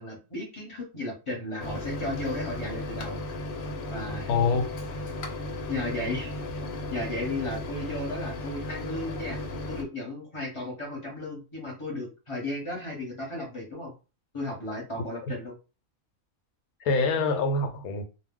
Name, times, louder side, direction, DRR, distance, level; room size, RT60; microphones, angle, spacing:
voice 1, 0.0-3.2 3.9-4.3 5.7-6.3 6.9-13.9 14.3-15.5, left 2 dB, 25° left, 0.9 m, -34 dB
Microwave oven, 1.6-9.8, left 1 dB, 65° left, 0.9 m, -35 dB
voice 2, 4.3-4.7 15.2-15.3 16.8-18.0, left 4 dB, 90° left, 1.1 m, -25 dB
2.3 x 2.1 x 3.6 m
omnidirectional pair, 1.5 m